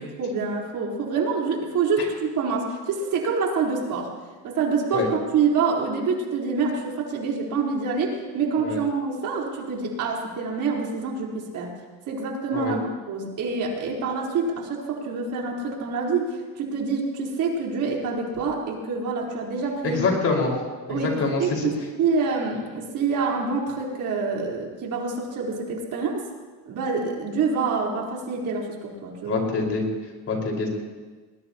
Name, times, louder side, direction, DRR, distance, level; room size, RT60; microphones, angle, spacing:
voice 1, 0.2-4.1 4.4-11.7 12.1-20.0 20.9-26.2 26.7-29.4, right 4 dB, 55° right, -1 dB, 4.2 m, -26 dB
voice 2, 19.8-20.5 20.9-21.6 29.3-29.8 30.3-30.7, left 4 dB, 40° left, 0 dB, 5.1 m, -25 dB
21.0 x 20.5 x 3.0 m, 1.4 s
supercardioid pair, 110°, 37 cm